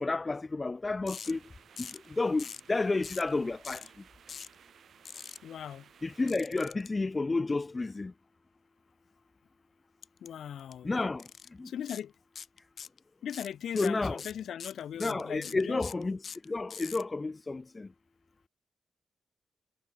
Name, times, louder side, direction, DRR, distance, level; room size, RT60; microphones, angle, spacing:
voice 1, 0.0-1.4 1.8-3.9 6.0-8.1 10.8-11.3 11.6-11.7 13.7-14.2 15.0-16.2 16.5-17.9, left 3 dB, 25° left, 0.7 m, -31 dB
sound 1, 1.1-1.3 1.8-2.1 2.4-2.7 3.0-3.3 3.6-3.9 4.3-4.5 5.1-5.4 6.3-6.9 10.0-10.3 10.6-10.7 11.2-11.5 11.9-12.0 12.4-13.0 13.3-17.0, left 6 dB, 55° left, 4.2 m, -43 dB
sound 2, 1.2-6.3, right 8 dB, 65° right, 5.4 m, -58 dB
voice 2, 5.4-5.9 10.2-10.9 11.6-12.1 13.2-15.8, left 9 dB, 75° left, 0.9 m, -39 dB
cardioid pair, 100°, 0 cm